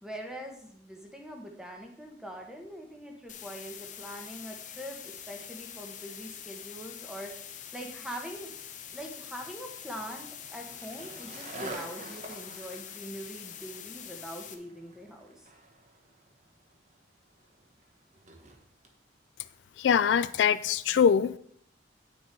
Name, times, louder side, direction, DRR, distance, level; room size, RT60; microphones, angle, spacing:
voice 1, 0.0-8.5 8.9-15.5, equal, 5° right, 2 dB, 1.2 m, -43 dB
sound 1, 3.3-14.5, left 9 dB, 40° left, 0.8 m, -45 dB
Skateboard, 8.4-19.0, right 2 dB, 40° right, 1.2 m, -48 dB
voice 2, 19.8-21.4, left 7 dB, 65° left, 14 dB, 0.3 m, -23 dB
9.4 x 6.3 x 4.6 m, 0.66 s
head